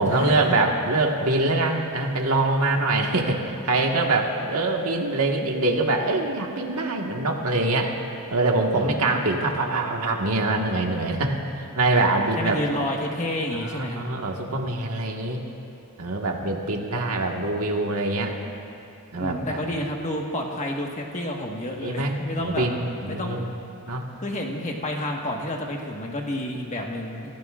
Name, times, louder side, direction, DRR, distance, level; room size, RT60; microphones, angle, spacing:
voice 1, 0.0-7.9 8.3-12.5 13.5-15.4 16.0-18.4 19.1-19.6 21.8-23.5 23.9-24.0, right 2 dB, 80° right, 1 dB, 1.7 m, -24 dB
voice 2, 8.7-9.2 12.4-14.0 16.9-17.0 19.1-22.7 23.1-23.4 24.2-27.3, left 1 dB, 35° left, 0 dB, 1.5 m, -30 dB
28.0 x 15.5 x 2.5 m, 2.9 s
head